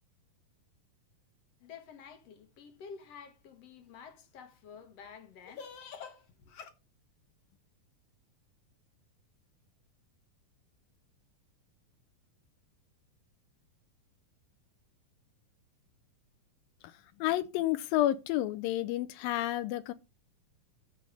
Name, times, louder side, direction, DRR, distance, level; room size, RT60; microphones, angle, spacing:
voice 1, 1.6-6.7, left 6 dB, 60° left, 1.8 m, -49 dB
voice 2, 16.8-19.9, left 14 dB, 85° left, 2.3 m, -30 dB
14.0 x 5.4 x 3.3 m
omnidirectional pair, 4.1 m